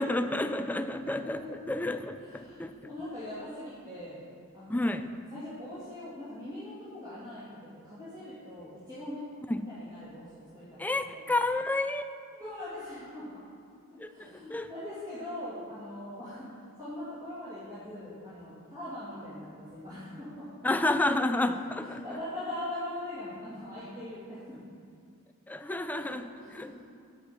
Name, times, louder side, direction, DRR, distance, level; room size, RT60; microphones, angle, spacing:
voice 1, 0.0-2.7 4.7-5.1 9.5-9.6 10.8-12.1 14.0-14.7 20.6-22.0 25.5-26.8, left 2 dB, 10° left, 9 dB, 0.4 m, -30 dB
voice 2, 0.9-1.6 2.2-4.2 4.5-5.0 5.3-9.2 9.7-11.2 12.4-13.5 13.9-16.5 16.8-20.5 21.5-24.6 25.9-26.8, left 1 dB, 20° right, -13 dB, 2.7 m, -42 dB
8.4 x 8.2 x 5.8 m, 2.4 s
head